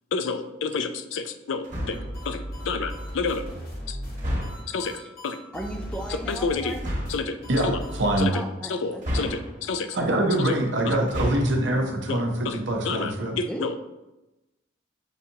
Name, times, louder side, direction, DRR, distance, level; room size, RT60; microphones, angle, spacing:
voice 1, 0.1-2.0 2.3-3.4 3.9-4.0 4.7-5.0 5.2-5.4 6.3-6.7 7.1-7.4 7.6-7.8 8.2-8.3 8.7-10.0 10.4-10.6 10.9-11.0 12.1-13.8, left 4 dB, 70° left, 9 dB, 0.3 m, -29 dB
sound 1, 1.6-2.2 4.2-4.8 6.7-7.3 9.0-9.8 11.0-11.7, equal, 40° right, 1.0 m, -31 dB
sound 2, 1.9-8.2, equal, 45° left, 1.0 m, -36 dB
voice 2, 5.5-6.8 8.3-9.3 9.6-9.9 13.5-13.8, right 1 dB, 5° left, 2 dB, 0.4 m, -36 dB
voice 3, 7.5-8.3 9.9-13.4, right 1 dB, 65° right, 2 dB, 0.7 m, -24 dB
6.8 x 2.7 x 2.8 m, 0.99 s
head